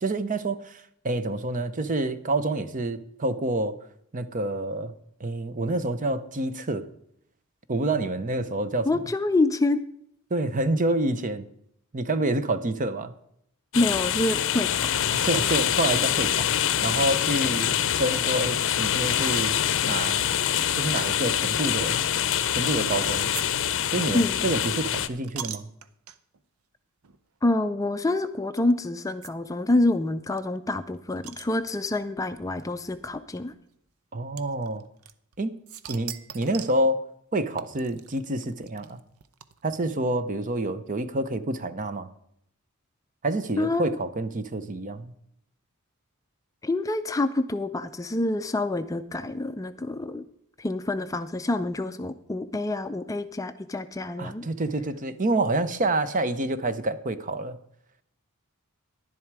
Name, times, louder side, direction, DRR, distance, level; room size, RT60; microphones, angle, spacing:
voice 1, 0.0-3.7 4.1-4.9 5.2-6.9 7.7-8.9 10.3-11.5 11.9-13.1 15.1-16.5 16.8-19.6 19.9-20.4 20.7-22.0 22.5-23.3 23.9-25.7 34.1-34.8 35.4-35.6 35.9-37.0 37.3-39.0 39.6-42.1 43.2-45.1 54.2-57.6, right 2 dB, 35° right, 12 dB, 0.7 m, -28 dB
voice 2, 8.8-9.8 13.7-14.9 24.1-24.5 27.4-33.5 43.6-43.8 46.6-50.2 50.6-54.5, left 2 dB, 15° left, 10 dB, 0.4 m, -27 dB
sound 1, 13.7-25.1, left 10 dB, 60° left, 0.6 m, -25 dB
sound 2, 22.7-23.0 23.3-23.5 23.7-26.4 27.0-27.2 27.4-27.5 28.6-28.7 29.2-29.3 29.6-29.7 29.9-30.0 30.4-32.0 32.9-33.0 34.4-35.4 35.7-36.8 37.6-39.9, right 10 dB, 85° right, 0.7 m, -42 dB
11.0 x 10.5 x 4.7 m, 0.71 s
head